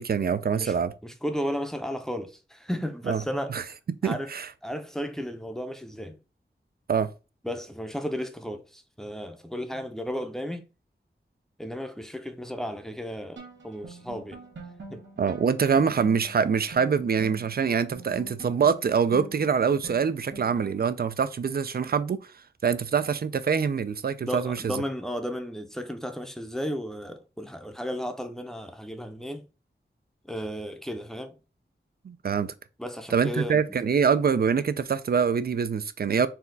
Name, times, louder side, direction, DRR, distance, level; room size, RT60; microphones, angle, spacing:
voice 1, 0.0-0.9 3.1-3.2 3.5-3.6 4.0-4.5 6.9-7.1 15.2-22.3 22.6-24.8 32.0-32.5 33.1-36.3, right 6 dB, 55° right, 0.4 m, -25 dB
voice 2, 1.0-3.6 4.0-4.3 4.6-6.2 7.4-10.6 11.6-14.4 14.9-15.0 24.2-29.4 30.2-31.3 32.8-33.6, equal, ahead, 0.6 m, -34 dB
sound 1, 13.4-21.0, right 3 dB, 80° right, 1.1 m, -45 dB
4.2 x 2.3 x 3.8 m
wide cardioid pair, 70°, 19 cm